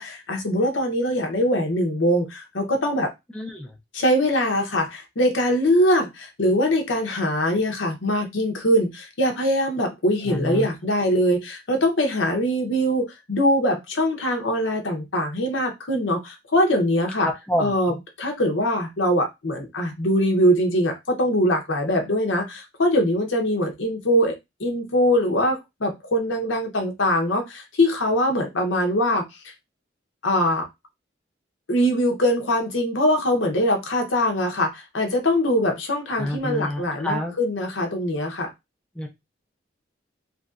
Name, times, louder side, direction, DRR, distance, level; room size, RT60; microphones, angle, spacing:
voice 1, 0.0-3.1 3.9-17.3 17.6-29.2 30.2-30.7 31.7-38.5, equal, 85° left, 0.8 m, -22 dB
voice 2, 3.3-3.7 10.3-10.7 17.2-18.0 36.2-37.3 39.0-39.1, equal, 5° left, 0.4 m, -28 dB
3.0 x 2.6 x 2.4 m
head